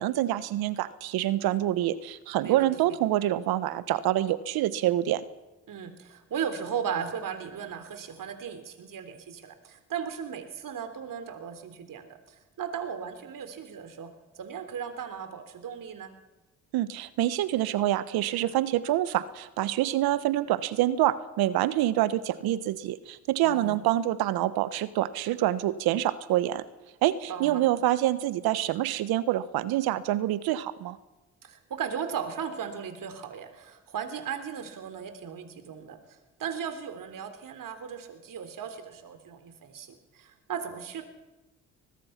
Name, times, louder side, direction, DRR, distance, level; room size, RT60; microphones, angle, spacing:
voice 1, 0.0-5.2 16.7-26.6 27.0-31.0, right 14 dB, 75° right, 15 dB, 1.3 m, -26 dB
voice 2, 2.4-2.7 5.7-14.1 14.4-16.1 23.4-23.8 27.3-27.6 31.4-36.0 36.4-39.9 40.1-41.0, right 7 dB, 60° right, 8 dB, 3.7 m, -36 dB
23.0 x 20.0 x 6.0 m, 1.0 s
hypercardioid pair, 55°, 37 cm